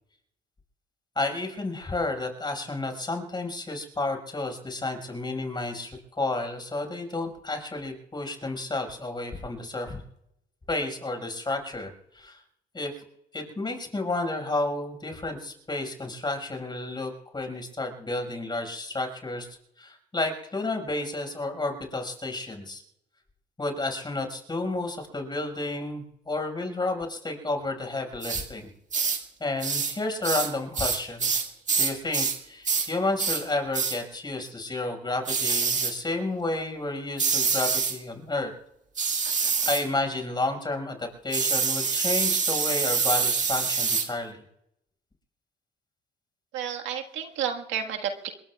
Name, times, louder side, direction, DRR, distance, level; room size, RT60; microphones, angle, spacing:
voice 1, 1.2-10.0 10.7-12.4 12.7-12.9 13.3-19.5 19.8-22.8 23.6-28.7 29.4-31.3 31.8-38.5 39.6-44.4, left 2 dB, 25° left, 4 dB, 5.6 m, -31 dB
sound 1, 28.2-28.5 28.9-29.2 29.6-30.0 30.2-32.4 32.6-32.9 33.2-33.4 33.7-34.0 35.3-36.0 37.2-38.0 39.0-39.9 41.3-44.1, right 5 dB, 40° right, 1.9 m, -26 dB
voice 2, 46.5-48.3, right 8 dB, 90° right, 3 dB, 1.6 m, -31 dB
27.0 x 22.0 x 2.4 m, 0.79 s
cardioid pair, 80°, 19 cm